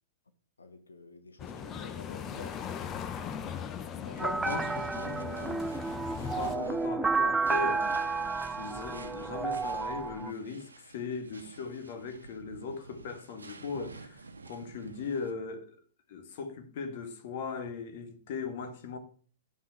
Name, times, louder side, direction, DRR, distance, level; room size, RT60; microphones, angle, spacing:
voice 1, 0.6-2.8 3.9-4.3, left 3 dB, 80° left, 1.2 m, -50 dB
sound 1, 1.4-6.6, left 8 dB, 25° left, 0.9 m, -39 dB
sound 2, 4.1-15.3, right 3 dB, 80° right, 1.0 m, -50 dB
voice 2, 4.2-5.7 6.0-8.2 8.6-15.8 16.1-19.0, left 5 dB, 50° left, 1.8 m, -39 dB
sound 3, 4.2-10.3, right 4 dB, 10° right, 0.3 m, -31 dB
9.9 x 5.9 x 6.1 m
figure-of-eight pair, 105°, 0 cm